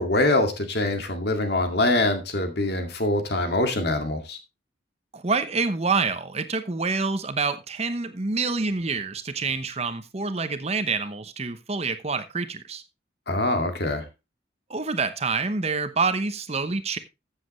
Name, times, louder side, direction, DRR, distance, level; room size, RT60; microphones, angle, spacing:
voice 1, 0.0-4.4 13.3-14.0, left 2 dB, 55° left, 2.1 m, -24 dB
voice 2, 5.1-12.8 14.7-17.0, right 4 dB, 35° right, 0.9 m, -27 dB
14.0 x 7.6 x 3.2 m
head